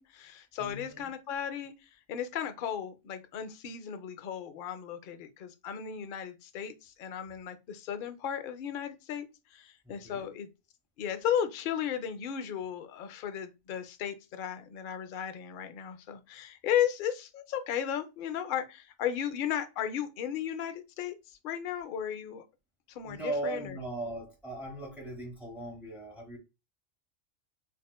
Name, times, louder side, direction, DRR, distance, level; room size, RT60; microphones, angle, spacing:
voice 1, 0.0-10.5 11.0-22.4 22.9-23.8, left 9 dB, 60° left, 0.5 m, -35 dB
voice 2, 0.6-1.1 9.8-10.3 23.0-26.4, right 2 dB, ahead, 0.9 m, -38 dB
4.2 x 2.4 x 2.2 m
omnidirectional pair, 1.4 m